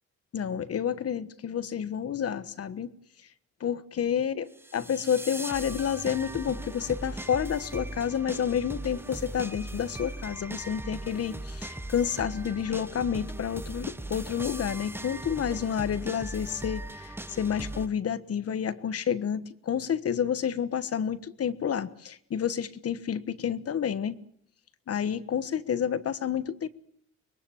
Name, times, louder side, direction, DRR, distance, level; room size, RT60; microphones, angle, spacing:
voice 1, 0.3-2.9 3.6-4.5 4.7-24.2 24.9-26.7, left 8 dB, 50° left, 14 dB, 1.4 m, -29 dB
sound 1, 4.6-17.9, right 1 dB, 5° right, 1.0 m, -39 dB
25.0 x 21.5 x 7.2 m, 0.66 s
cardioid pair, 90°, 30 cm